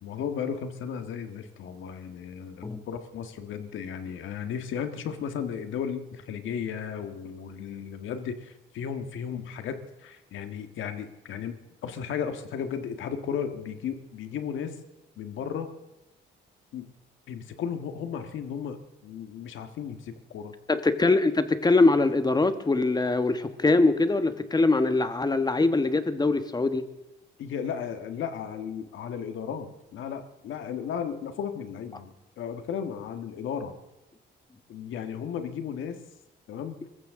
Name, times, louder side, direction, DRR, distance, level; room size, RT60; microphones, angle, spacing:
voice 1, 0.0-14.8 15.2-15.7 16.7-16.9 17.3-18.8 19.0-20.5 27.4-33.7 34.7-36.0 36.5-36.8, left 7 dB, 80° left, 8 dB, 1.6 m, -35 dB
voice 2, 20.7-26.8, left 3 dB, 20° left, 10 dB, 1.2 m, -23 dB
23.5 x 14.5 x 3.7 m, 0.98 s
cardioid pair, 90°, 20 cm